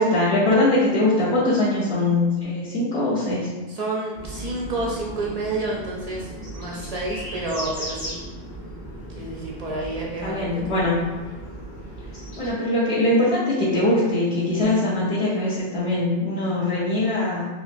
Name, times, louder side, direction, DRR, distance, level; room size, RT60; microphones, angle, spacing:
voice 1, 0.0-3.5 10.2-11.0 12.4-17.5, left 2 dB, 55° left, -11 dB, 1.1 m, -22 dB
voice 2, 3.7-8.2 9.1-10.8, right 2 dB, 55° right, -4 dB, 0.4 m, -30 dB
sound 1, 4.1-12.5, right 1 dB, 35° left, 1.5 m, -36 dB
3.7 x 3.0 x 2.5 m, 1.3 s
omnidirectional pair, 1.3 m